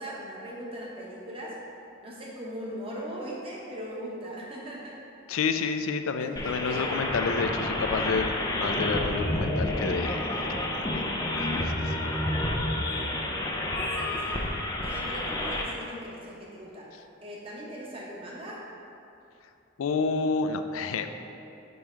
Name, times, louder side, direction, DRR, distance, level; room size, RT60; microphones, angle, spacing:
voice 1, 0.0-1.5 2.0-5.0 6.1-7.0 14.0-14.4 14.8-16.9 17.2-18.6, equal, 25° right, -4 dB, 1.0 m, -39 dB
voice 2, 5.3-12.0 19.8-21.1, left 4 dB, 90° left, 8 dB, 0.4 m, -30 dB
sound 1, 6.4-15.6, left 1 dB, 20° left, 0.4 m, -29 dB
5.4 x 4.8 x 4.4 m, 2.8 s
head